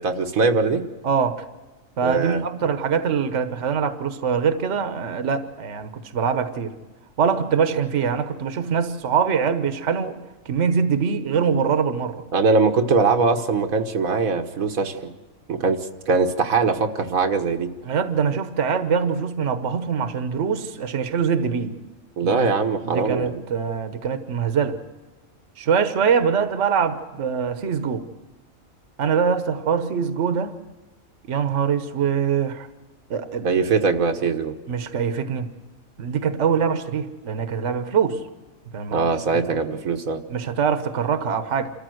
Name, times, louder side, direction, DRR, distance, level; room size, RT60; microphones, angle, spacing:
voice 1, 0.0-0.8 2.0-2.4 12.3-15.1 15.5-17.7 22.2-23.4 33.4-34.5 38.9-40.2, right 4 dB, 85° right, 5 dB, 1.7 m, -21 dB
voice 2, 1.0-1.4 2.0-6.7 7.2-10.2 10.4-12.2 17.8-21.8 22.2-22.5 22.8-24.8 25.6-28.0 29.0-30.5 31.3-32.7 33.1-33.5 34.7-35.5 36.0-38.2 38.7-39.1 39.5-39.6 40.3-41.7, right 6 dB, 60° right, 10 dB, 1.4 m, -23 dB
27.5 x 14.0 x 7.8 m, 1.2 s
omnidirectional pair, 1.4 m